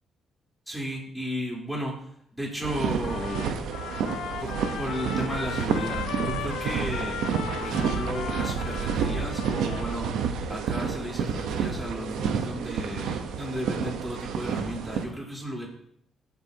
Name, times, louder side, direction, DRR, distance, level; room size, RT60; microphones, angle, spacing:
voice 1, 0.7-2.0 2.3-3.6 4.4-7.2 7.6-10.2 10.5-15.7, equal, 5° right, -3 dB, 3.9 m, -34 dB
sound 1, 2.6-15.1, right 6 dB, 85° right, 1.1 m, -30 dB
Trumpet, 3.0-10.2, left 9 dB, 85° left, 0.7 m, -37 dB
16.0 x 8.4 x 2.9 m, 0.69 s
cardioid pair, 90°, 0 cm